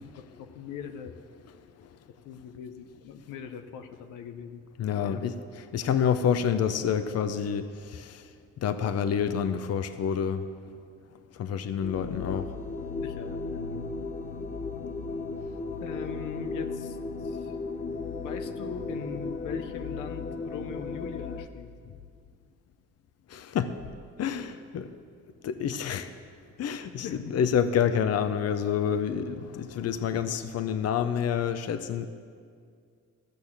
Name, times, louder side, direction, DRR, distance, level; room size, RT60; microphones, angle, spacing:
voice 1, 0.4-1.2 2.1-4.6 4.9-5.2 12.3-12.4 13.0-13.9 15.8-17.5 18.2-21.7 27.0-27.5, left 7 dB, 90° left, 8 dB, 0.8 m, -41 dB
voice 2, 4.8-8.3 8.6-10.5 11.3-12.5 23.3-23.8 24.2-24.9 25.4-26.1 26.6-32.1, left 8 dB, 55° left, 11 dB, 0.7 m, -28 dB
sound 1, 11.8-21.5, left 3 dB, 25° left, 0.7 m, -35 dB
14.5 x 6.3 x 7.3 m, 2.2 s
cardioid pair, 90°, 30 cm